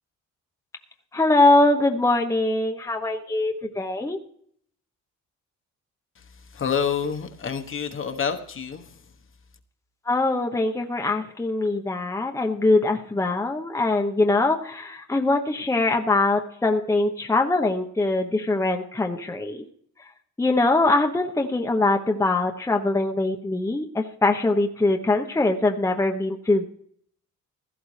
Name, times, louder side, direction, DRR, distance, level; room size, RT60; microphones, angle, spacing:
voice 1, 1.1-4.2 10.1-19.6 20.4-26.7, left 2 dB, 10° left, 2 dB, 0.9 m, -22 dB
voice 2, 6.2-9.1, left 7 dB, 45° left, 6 dB, 1.1 m, -28 dB
16.0 x 13.5 x 3.3 m, 0.64 s
cardioid pair, 90°, 30 cm